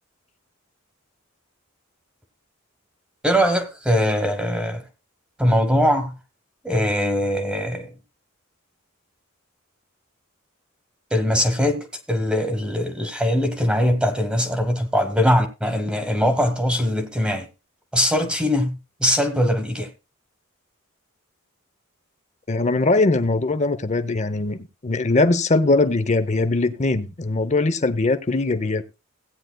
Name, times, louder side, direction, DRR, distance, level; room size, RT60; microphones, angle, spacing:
voice 1, 3.2-4.8 5.4-6.1 6.6-7.9 11.1-17.5 17.9-19.9, equal, 5° right, 1.2 m, -21 dB
voice 2, 22.5-24.6 24.8-28.8, left 2 dB, 35° left, 0.7 m, -21 dB
16.5 x 9.1 x 2.2 m
head